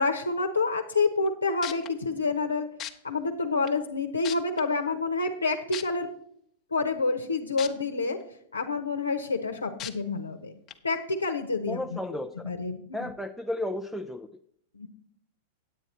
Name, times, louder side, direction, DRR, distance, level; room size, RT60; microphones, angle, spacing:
voice 1, 0.0-2.7 3.0-6.1 6.7-8.2 8.5-10.5 10.8-12.2 12.4-13.1 14.7-14.9, left 3 dB, 85° left, 5 dB, 0.9 m, -28 dB
sound 1, 1.3-1.4 1.6-1.9 2.8-2.9 3.7-3.8 4.2-4.6 5.7-5.8 7.6-7.7 8.2-8.3 9.8-9.9 10.7-10.8, left 11 dB, 35° left, 0.9 m, -35 dB
voice 2, 11.7-12.5 12.9-14.3, left 1 dB, ahead, 2 dB, 0.5 m, -33 dB
9.0 x 9.0 x 4.3 m, 0.68 s
figure-of-eight pair, 95°, 0 cm